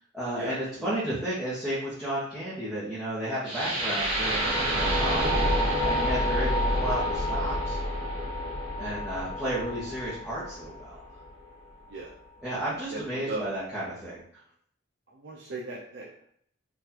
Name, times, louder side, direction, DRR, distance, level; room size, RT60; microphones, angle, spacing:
voice 1, 0.1-7.8 8.8-11.0 12.4-14.2, right 1 dB, ahead, -12 dB, 0.9 m, -33 dB
sound 1, 3.4-11.5, equal, 30° right, 1.3 m, -28 dB
voice 2, 15.2-16.2, right 3 dB, 60° right, -4 dB, 0.5 m, -36 dB
3.9 x 2.5 x 2.8 m, 0.65 s
head